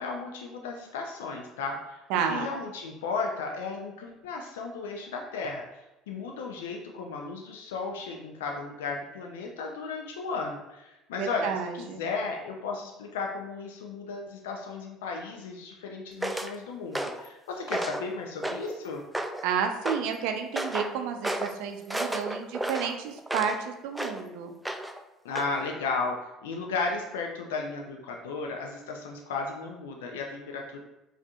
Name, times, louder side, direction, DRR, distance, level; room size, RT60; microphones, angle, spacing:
voice 1, 0.0-5.6 6.1-19.0 25.2-30.8, left 4 dB, 80° left, 1 dB, 0.4 m, -34 dB
voice 2, 2.1-2.5 11.2-12.0 19.4-24.5, right 7 dB, 70° right, 5 dB, 0.4 m, -31 dB
sound 1, 16.2-16.5 16.9-17.3 17.7-18.1 18.4-18.8 19.1-19.5 19.9-20.1 20.6-20.9 21.2-21.5 21.9-23.6 23.9-24.2 24.6-25.0 25.4-25.5, right 1 dB, 5° right, 0.3 m, -32 dB
4.8 x 2.5 x 2.3 m, 0.95 s
hypercardioid pair, 70°, 0 cm